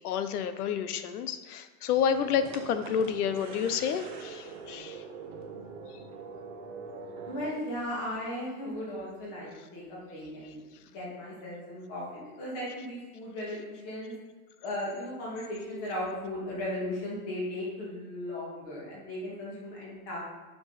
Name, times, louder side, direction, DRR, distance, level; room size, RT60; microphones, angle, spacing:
voice 1, 0.0-5.0, left 8 dB, 80° left, 11 dB, 0.8 m, -30 dB
sound 1, 1.9-7.5, right 4 dB, 30° right, 0.8 m, -43 dB
voice 2, 7.3-10.6 10.9-14.1 14.6-20.2, left 1 dB, 30° left, -5 dB, 2.2 m, -36 dB
7.6 x 6.3 x 4.0 m, 1.2 s
supercardioid pair, 180°, 45 cm